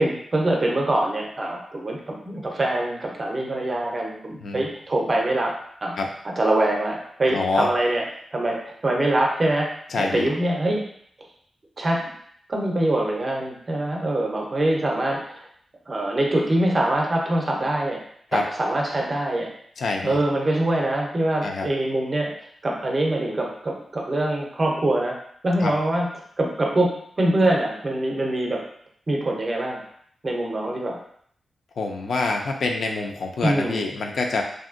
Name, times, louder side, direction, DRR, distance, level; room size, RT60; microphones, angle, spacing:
voice 1, 0.0-5.5 5.8-6.0 6.2-8.1 8.3-9.7 10.0-10.8 11.8-12.1 12.5-15.4 15.9-18.0 18.3-19.5 20.0-22.3 22.6-25.2 25.4-26.1 26.4-28.6 29.1-29.8 30.2-31.0 33.4-33.8, right 1 dB, 30° right, -1 dB, 0.5 m, -24 dB
voice 2, 7.3-7.7 9.9-10.3 18.3-18.4 19.8-20.2 21.4-21.7 25.6-25.7 31.8-34.4, left 3 dB, 65° left, 2 dB, 0.4 m, -26 dB
3.1 x 2.6 x 2.5 m, 0.64 s
wide cardioid pair, 170°, 0 cm